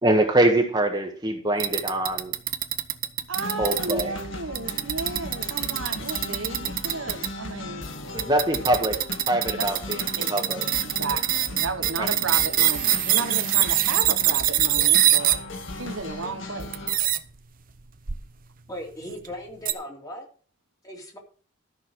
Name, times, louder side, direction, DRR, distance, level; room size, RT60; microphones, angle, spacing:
voice 1, 0.0-2.3 3.6-4.2 8.1-9.0 9.3-10.0 10.3-10.7 12.0-12.2, right 1 dB, 20° right, 1.5 m, -23 dB
sound 1, 1.6-4.0 4.6-7.3 8.2-15.4 15.7-16.1 16.7-17.2 18.1-18.2 19.1-19.3 19.7-19.8, right 12 dB, 40° right, 0.8 m, -23 dB
sound 2, 3.3-17.0, left 2 dB, 65° left, 2.2 m, -37 dB
voice 2, 3.3-7.9 9.6-9.7 10.2-10.4 10.8-15.4 15.8-16.7, right 3 dB, 70° right, 1.2 m, -33 dB
voice 3, 18.7-20.3 20.8-21.2, equal, 15° left, 2.7 m, -38 dB
13.0 x 6.6 x 6.3 m
head